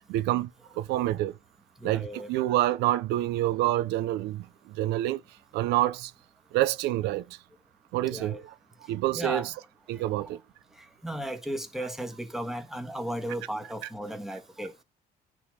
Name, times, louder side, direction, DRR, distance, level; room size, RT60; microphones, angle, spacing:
voice 1, 0.1-0.5 0.8-1.3 1.8-5.2 5.5-6.1 6.5-7.3 7.9-8.5 8.9-9.5 9.9-10.4, right 15 dB, 90° right, 0.7 m, -27 dB
voice 2, 1.8-2.3 8.1-8.4 9.1-9.5 9.9-10.3 10.7-14.8, right 1 dB, ahead, 1.6 m, -35 dB
10.0 x 3.9 x 4.7 m
cardioid pair, 110°, 17 cm